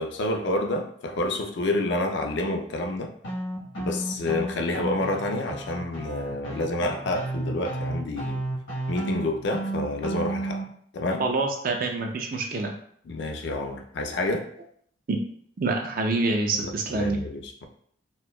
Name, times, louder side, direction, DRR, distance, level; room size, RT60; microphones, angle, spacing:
voice 1, 0.0-3.1 3.8-8.4 8.9-10.6 10.9-11.2 13.1-14.5 16.6-17.6, left 2 dB, 60° left, 3 dB, 0.4 m, -28 dB
sound 1, 3.2-10.6, right 2 dB, 75° left, 1.1 m, -32 dB
voice 2, 11.2-12.7 15.1-15.2 15.6-17.2, right 3 dB, 45° right, 3 dB, 0.4 m, -26 dB
4.3 x 2.2 x 2.2 m, 0.63 s
head